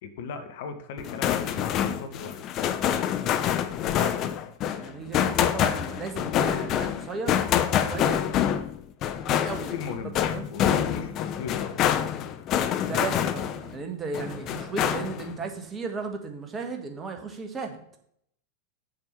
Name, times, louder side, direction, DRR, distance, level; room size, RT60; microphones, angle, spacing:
voice 1, 0.0-2.4 9.7-10.2 10.5-11.8, left 5 dB, 50° left, 7 dB, 1.2 m, -37 dB
sound 1, 1.0-13.7 14.1-15.3, left 10 dB, 35° left, 0.7 m, -26 dB
voice 2, 3.9-4.3 4.7-7.4 7.8-8.2 9.2-9.7 10.3-10.5 12.8-17.8, right 4 dB, 20° right, 4 dB, 1.5 m, -35 dB
7.6 x 7.5 x 4.5 m, 0.66 s
figure-of-eight pair, 90°, 0 cm